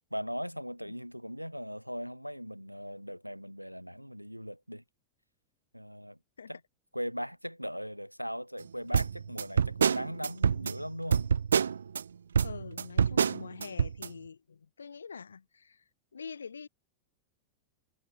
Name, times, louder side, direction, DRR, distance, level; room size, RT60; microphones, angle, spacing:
voice 1, 0.1-4.8 5.7-6.2 6.5-6.6 6.9-11.3, equal, 90° right, 2.1 m, -39 dB
sound 1, 8.9-12.0 12.3-14.1, right 7 dB, 70° right, 0.5 m, -27 dB
voice 2, 12.4-15.8 16.1-16.7, left 6 dB, 75° left, 3.6 m, -45 dB
figure-of-eight pair, 90°, 0 cm